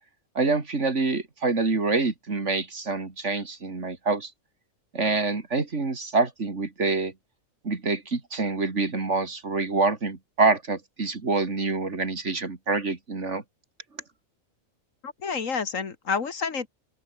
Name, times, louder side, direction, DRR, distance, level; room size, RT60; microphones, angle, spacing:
voice 1, 0.3-4.3 4.9-7.1 7.6-13.4, right 3 dB, 60° right, 3.0 m, -26 dB
voice 2, 15.0-16.7, left 5 dB, 70° left, 2.2 m, -29 dB
open air
omnidirectional pair, 1.4 m